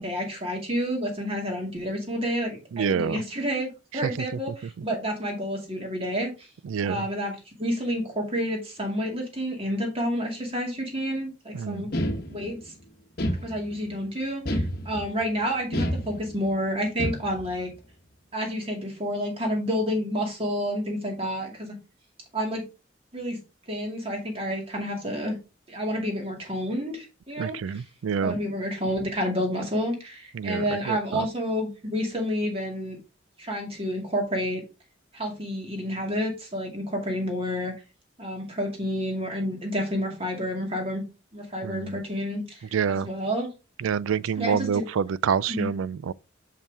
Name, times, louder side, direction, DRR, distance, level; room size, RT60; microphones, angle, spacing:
voice 1, 0.0-6.5 6.8-12.7 13.4-17.7 18.3-21.8 22.3-22.6 23.1-23.4 23.7-25.4 25.7-27.8 28.2-33.0 33.4-34.6 35.1-37.7 38.2-41.0 41.3-43.5 44.4-44.8 45.5-45.7, equal, 30° right, 2.2 m, -29 dB
voice 2, 2.7-3.2 4.0-4.1 4.8-4.9 6.6-7.0 11.5-11.9 27.4-28.4 30.3-31.3 41.6-42.0 42.7-43.1 43.8-46.1, right 7 dB, 85° right, 0.4 m, -27 dB
sound 1, 11.9-12.7 13.2-13.9 14.5-15.2 15.7-16.5 17.0-17.6, equal, 50° left, 1.0 m, -29 dB
7.0 x 5.4 x 3.5 m
head